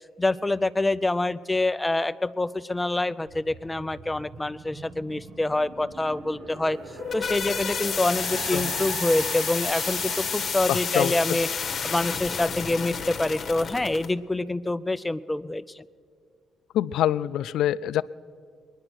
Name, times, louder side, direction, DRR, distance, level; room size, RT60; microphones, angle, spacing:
voice 1, 0.2-6.8 7.1-11.5 11.8-15.8, left 2 dB, 15° left, 14 dB, 0.4 m, -26 dB
sound 1, 3.3-12.6, right 5 dB, 70° right, 1.1 m, -41 dB
sound 2, 6.8-14.1, left 6 dB, 50° left, 1.0 m, -30 dB
voice 2, 10.7-11.1 16.7-18.0, left 12 dB, 80° left, 18 dB, 0.3 m, -25 dB
22.0 x 10.0 x 6.2 m, 2.1 s
cardioid pair, 90°, 0 cm